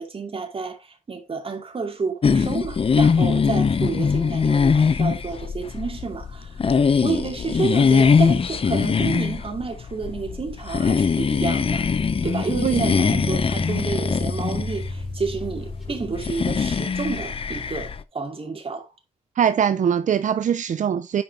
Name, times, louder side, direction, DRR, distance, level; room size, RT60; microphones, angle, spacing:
voice 1, 0.0-11.8 12.2-18.9, right 4 dB, 45° right, 2.5 m, -30 dB
sound 1, 2.2-18.0, left 5 dB, 45° left, 0.6 m, -22 dB
sound 2, 11.1-16.8, left 1 dB, ahead, 2.0 m, -33 dB
voice 2, 12.6-13.2 19.4-21.2, right 8 dB, 75° right, 0.5 m, -22 dB
9.5 x 5.3 x 3.3 m
wide cardioid pair, 115°, 13 cm